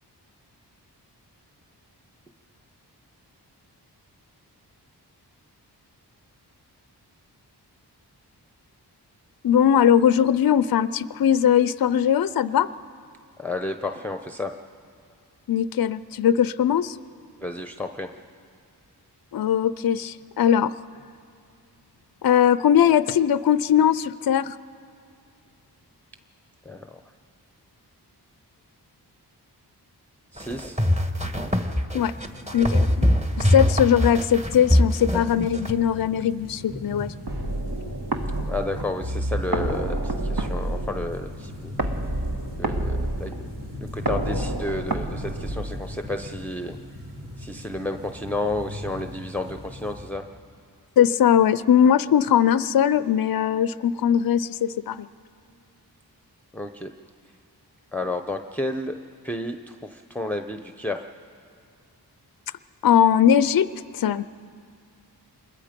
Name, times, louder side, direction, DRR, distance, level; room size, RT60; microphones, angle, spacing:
voice 1, 9.4-12.7 15.5-17.0 19.3-20.7 22.2-24.6 31.9-32.1 32.5-33.1 33.4-37.1 51.0-55.1 62.8-63.7 63.9-64.3, left 9 dB, 55° left, 16 dB, 0.5 m, -20 dB
voice 2, 13.4-14.5 17.4-18.1 26.6-27.0 30.3-30.8 38.5-41.7 42.6-43.4 43.8-46.8 47.4-50.2 56.5-56.9 57.9-59.0 59.2-61.0, left 2 dB, 5° left, 6 dB, 0.7 m, -31 dB
sound 1, 30.4-35.7, left 1 dB, 15° right, 1.4 m, -21 dB
sound 2, 31.9-50.1, left 1 dB, 75° right, 4.4 m, -40 dB
sound 3, 37.3-46.2, right 1 dB, 60° right, 1.5 m, -29 dB
26.5 x 21.0 x 5.2 m, 2.3 s
cardioid pair, 50°, 42 cm